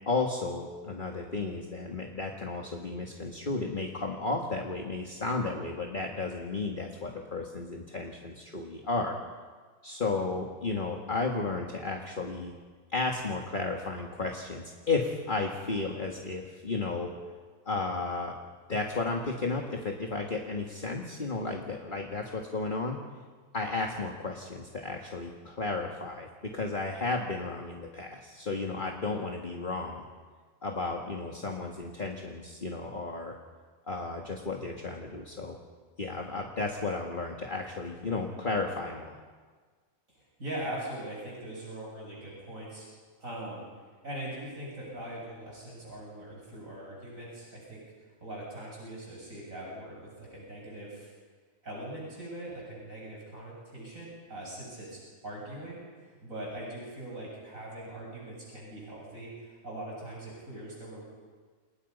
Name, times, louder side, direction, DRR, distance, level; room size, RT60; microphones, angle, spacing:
voice 1, 0.1-9.2 9.8-12.5 12.9-17.1 17.7-18.4 18.7-23.0 23.5-30.0 30.6-33.4 33.9-35.6 36.0-39.2, left 3 dB, 35° left, 1 dB, 2.2 m, -33 dB
voice 2, 40.1-42.9 43.2-43.6 44.0-47.8 48.2-51.1 51.6-55.8 56.1-61.0, right 1 dB, 80° right, -4 dB, 8.4 m, -41 dB
29.5 x 28.5 x 5.6 m, 1.5 s
omnidirectional pair, 1.4 m